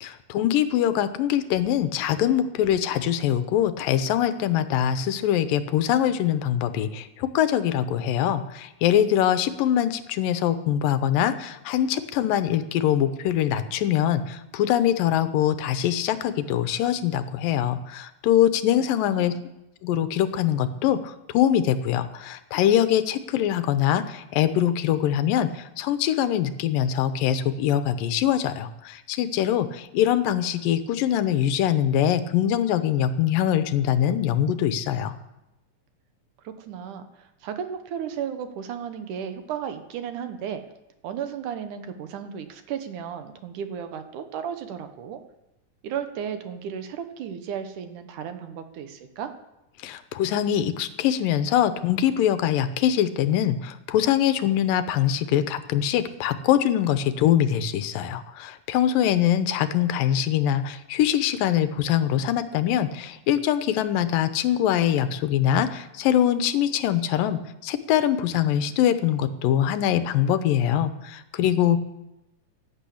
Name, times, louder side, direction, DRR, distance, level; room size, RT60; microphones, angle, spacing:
voice 1, 0.0-19.3 19.8-35.1 49.8-71.8, left 10 dB, 80° left, 11 dB, 2.5 m, -23 dB
voice 2, 18.8-19.3 36.4-40.6 41.0-45.2 45.8-49.3, right 8 dB, 70° right, 8 dB, 2.4 m, -34 dB
12.0 x 11.0 x 8.5 m, 0.92 s
omnidirectional pair, 4.0 m